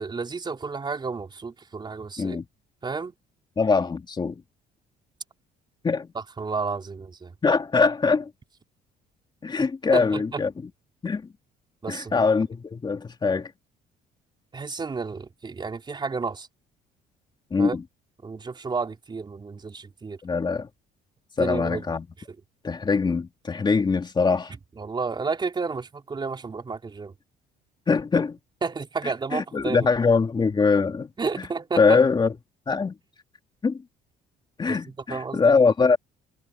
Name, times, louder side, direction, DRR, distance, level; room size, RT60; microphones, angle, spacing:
voice 1, 0.0-2.4 2.8-3.1 6.1-7.3 9.6-10.4 11.8-12.2 14.5-16.5 17.6-17.8 18.2-20.2 21.4-21.8 24.8-27.1 28.6-29.9 31.2-32.0 34.7-35.5, right 4 dB, 25° right, 4.4 m, -31 dB
voice 2, 3.6-4.4 5.8-6.1 7.4-8.3 9.4-10.7 11.0-11.3 11.9-13.5 17.5-17.8 20.2-20.7 21.4-22.1 22.6-24.5 27.9-28.4 29.3-31.1 31.4-31.5 31.8-32.3 32.7-32.9 33.6-33.8 34.6-36.0, left 4 dB, 25° left, 3.0 m, -22 dB
cardioid pair, 110°, 17 cm